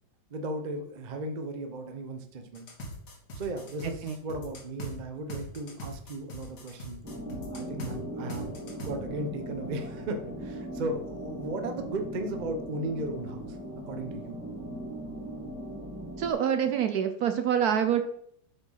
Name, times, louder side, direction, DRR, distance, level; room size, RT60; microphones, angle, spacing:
voice 1, 0.3-2.7 3.3-7.0 7.5-13.6 13.9-14.4, right 2 dB, 40° right, 6 dB, 0.7 m, -36 dB
sound 1, 2.6-4.9 5.3-7.9 8.3-8.9, right 1 dB, 65° left, 2.2 m, -40 dB
sound 2, 7.0-16.3, right 1 dB, 5° right, 1.5 m, -39 dB
voice 2, 16.2-18.0, right 8 dB, 65° right, 8 dB, 1.0 m, -26 dB
7.9 x 4.9 x 5.6 m, 0.68 s
omnidirectional pair, 2.0 m